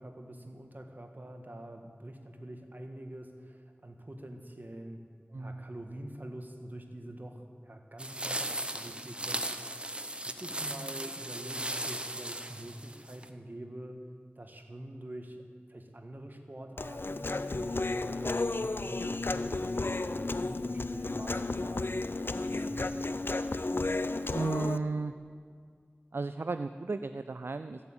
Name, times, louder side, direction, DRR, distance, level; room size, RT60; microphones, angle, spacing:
voice 1, 0.0-5.0 5.4-9.9 10.2-14.1 14.3-15.4 15.7-23.1, right 1 dB, 50° right, 4 dB, 1.5 m, -45 dB
voice 2, 5.3-5.6 24.3-25.1 26.1-27.8, right 3 dB, 70° right, 10 dB, 0.4 m, -34 dB
sound 1, 8.0-13.3, right 1 dB, 25° right, 0.8 m, -37 dB
Human voice, 16.8-24.8, left 2 dB, 65° left, 0.5 m, -33 dB
14.0 x 8.2 x 8.7 m, 2.1 s
wide cardioid pair, 55°, 4 cm